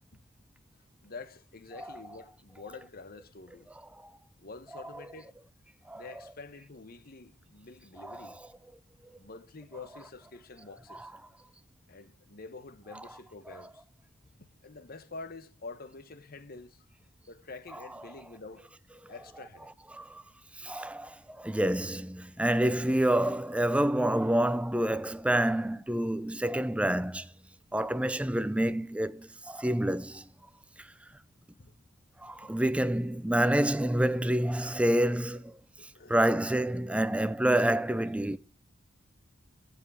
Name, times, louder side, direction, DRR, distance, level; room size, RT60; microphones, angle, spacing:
voice 1, 1.0-3.7 4.4-5.3 5.9-8.4 9.2-11.1 11.9-13.8 14.6-16.9 17.3-18.7 19.1-19.7 31.6-31.7 35.8-36.2, left 3 dB, 45° left, 1.0 m, -47 dB
voice 2, 8.0-8.3 11.0-11.1 19.9-20.2 20.6-27.3 27.7-30.2 32.2-35.5 36.1-38.4, right 1 dB, 5° right, 0.5 m, -28 dB
15.5 x 5.3 x 8.4 m
head